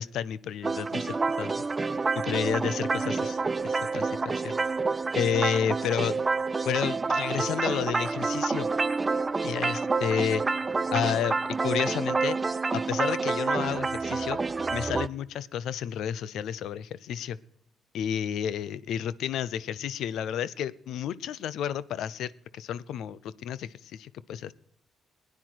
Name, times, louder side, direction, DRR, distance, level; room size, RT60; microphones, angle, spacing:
voice 1, 0.0-1.7 2.2-3.4 3.6-4.6 5.2-6.2 6.6-8.7 9.4-10.4 10.9-12.4 12.7-14.4 14.7-17.4 17.9-24.5, left 9 dB, 80° left, 20 dB, 0.5 m, -31 dB
sound 1, 0.6-15.1, right 4 dB, 25° right, 0.5 m, -28 dB
17.5 x 9.8 x 4.6 m, 0.70 s
cardioid pair, 90°, 0 cm